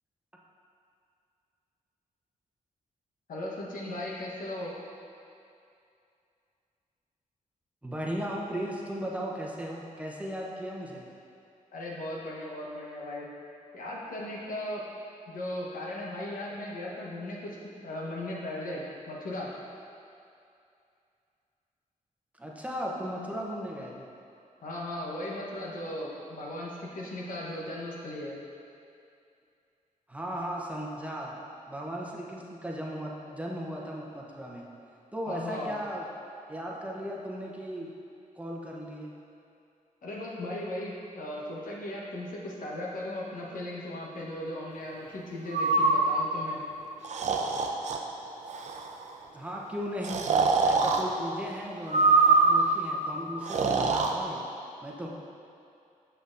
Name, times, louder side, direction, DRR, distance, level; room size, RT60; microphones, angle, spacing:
voice 1, 3.3-4.7 11.7-13.3 13.7-14.8 15.3-17.6 17.8-19.5 24.6-28.4 35.3-35.8 40.0-46.6, left 1 dB, 80° left, -4 dB, 1.1 m, -37 dB
voice 2, 7.8-11.1 22.4-24.1 30.1-31.4 31.7-34.7 35.1-36.1 36.5-37.9 38.4-39.1 49.3-50.3 50.6-54.5 54.8-55.1, equal, 10° right, -3 dB, 0.8 m, -36 dB
Breathing, 45.5-46.0 47.0-48.0 48.5-48.9 50.0-51.0 51.9-52.7 53.4-54.1, right 3 dB, 55° right, 0.5 m, -23 dB
6.9 x 6.1 x 2.6 m, 2.5 s
cardioid pair, 90°, 14 cm